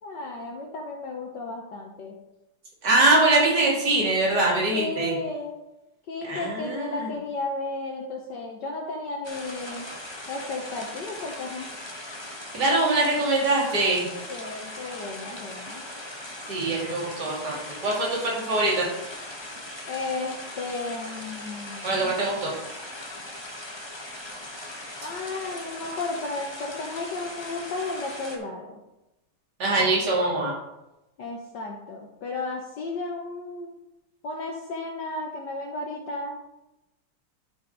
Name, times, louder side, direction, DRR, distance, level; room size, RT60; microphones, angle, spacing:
voice 1, 0.0-2.2 4.7-5.6 6.1-9.9 10.3-11.7 14.3-15.8 19.9-22.2 25.0-28.8 31.2-33.8 34.2-36.4, left 3 dB, 60° left, 0 dB, 1.5 m, -34 dB
voice 2, 2.8-5.2 6.2-7.1 12.5-14.1 16.5-18.9 21.8-22.5 29.6-30.5, right 2 dB, 50° right, -4 dB, 3.0 m, -23 dB
sound 1, 9.2-28.4, left 1 dB, 20° left, 0.8 m, -39 dB
12.0 x 5.3 x 3.9 m, 0.95 s
omnidirectional pair, 2.3 m